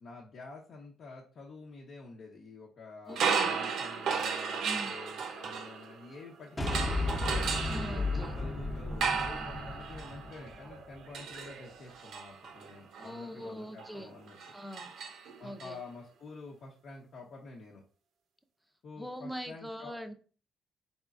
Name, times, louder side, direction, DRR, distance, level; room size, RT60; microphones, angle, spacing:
voice 1, 0.0-7.3 7.9-14.4 15.4-17.8 18.8-19.9, left 3 dB, 60° left, -2 dB, 0.9 m, -49 dB
voice 2, 3.1-3.6 4.6-5.0 7.7-8.3 13.0-14.1 14.5-14.9 15.4-15.8 19.0-20.1, equal, ahead, 7 dB, 0.6 m, -42 dB
sound 1, 3.1-6.2 6.7-15.7, right 6 dB, 75° right, 0.6 m, -35 dB
sound 2, 6.6-11.0, left 2 dB, 20° left, 0.9 m, -34 dB
4.3 x 3.6 x 2.5 m, 0.38 s
cardioid pair, 90°, 0 cm